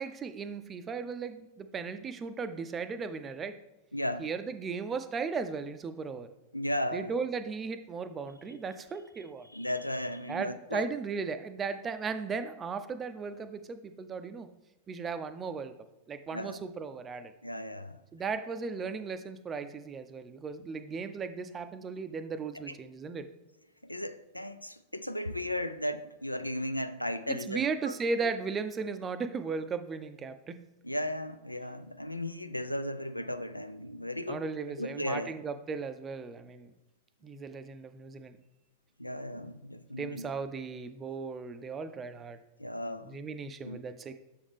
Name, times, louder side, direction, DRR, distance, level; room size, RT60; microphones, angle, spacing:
voice 1, 0.0-3.6 4.2-6.3 6.9-9.5 10.3-14.5 14.9-15.7 16.1-17.3 18.1-23.3 27.3-30.6 34.3-36.7 37.2-38.4 40.0-42.4 43.0-44.1, right 5 dB, 20° right, 0.5 m, -36 dB
voice 2, 3.9-4.3 6.5-7.1 9.5-10.9 16.3-16.6 17.4-18.0 22.7-22.8 23.8-28.3 30.8-34.4 34.8-35.3 39.0-40.3 42.6-43.2 43.6-43.8, left 1 dB, 85° left, 0.3 m, -35 dB
7.0 x 4.8 x 3.5 m
figure-of-eight pair, 90°, 0 cm